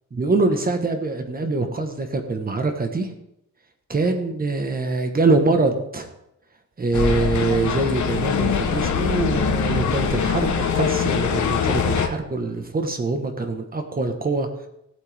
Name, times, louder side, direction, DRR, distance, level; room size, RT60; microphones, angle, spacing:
voice 1, 0.1-3.1 3.9-6.1 6.8-14.5, right 3 dB, 30° right, 5 dB, 1.4 m, -24 dB
sound 1, 6.9-12.1, left 6 dB, 65° left, 1.2 m, -23 dB
17.5 x 8.1 x 3.6 m, 0.81 s
wide cardioid pair, 165°, 31 cm